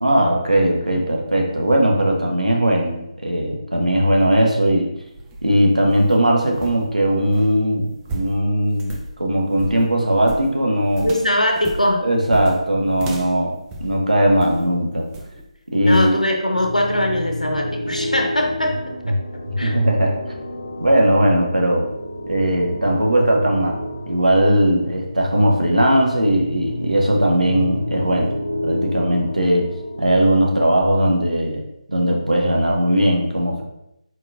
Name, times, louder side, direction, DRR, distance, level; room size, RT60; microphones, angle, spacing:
voice 1, 0.0-4.9 5.4-11.1 12.0-13.5 13.8-15.1 15.7-16.2 19.6-20.2 20.8-21.9 22.3-23.8 24.1-28.3 28.6-29.7 30.0-31.6 31.9-33.6, right 1 dB, 80° right, 0 dB, 1.0 m, -18 dB
sound 1, 5.0-14.7 15.1-15.5 15.9-16.2, right 2 dB, 10° right, 0.3 m, -35 dB
voice 2, 11.0-12.1 15.8-18.8 19.1-19.2 19.6-19.8, left 1 dB, 85° left, 2 dB, 0.8 m, -21 dB
sound 2, 16.5-30.1, left 1 dB, 45° left, 1.4 m, -30 dB
4.2 x 4.1 x 2.5 m, 0.84 s
figure-of-eight pair, 150°, 4 cm